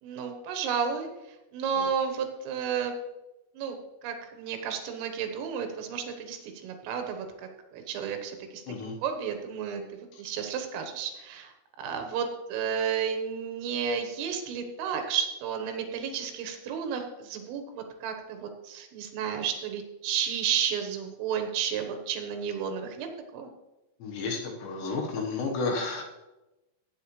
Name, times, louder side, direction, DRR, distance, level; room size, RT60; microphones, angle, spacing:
voice 1, 0.0-1.1 1.5-2.9 3.6-3.8 4.0-8.6 9.0-11.5 11.8-23.5, right 7 dB, 80° right, 5 dB, 3.9 m, -32 dB
voice 2, 8.7-9.0 10.1-10.2 24.0-26.0, left 3 dB, 70° left, 1 dB, 3.3 m, -32 dB
18.0 x 9.1 x 3.2 m, 1.0 s
omnidirectional pair, 5.8 m